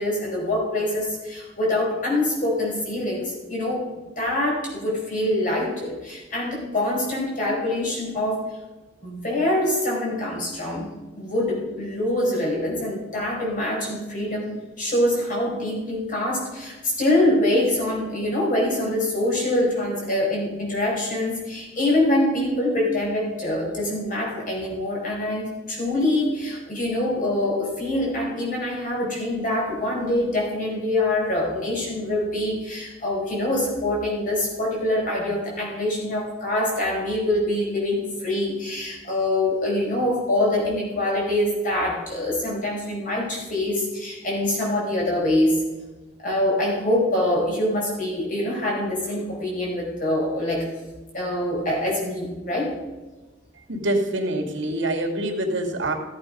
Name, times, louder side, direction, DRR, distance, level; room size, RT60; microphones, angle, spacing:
voice 1, 0.0-3.9 4.2-8.6 9.0-45.6 46.2-50.7 51.1-52.7, left 1 dB, 45° left, -3 dB, 4.7 m, -24 dB
voice 2, 53.7-55.9, right 1 dB, 90° right, 3 dB, 2.3 m, -25 dB
15.0 x 8.6 x 5.3 m, 1.2 s
head